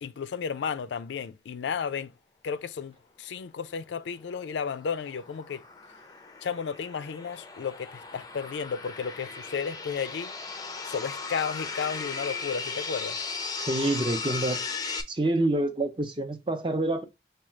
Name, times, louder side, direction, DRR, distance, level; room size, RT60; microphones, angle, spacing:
voice 1, 0.0-2.1 2.4-5.6 6.4-10.3 10.8-13.2, left 6 dB, 85° left, 0.4 m, -33 dB
sound 1, 4.2-15.0, left 4 dB, 20° left, 0.4 m, -37 dB
voice 2, 13.6-14.6 15.1-17.0, right 2 dB, 25° right, 0.6 m, -27 dB
4.8 x 2.3 x 4.3 m
head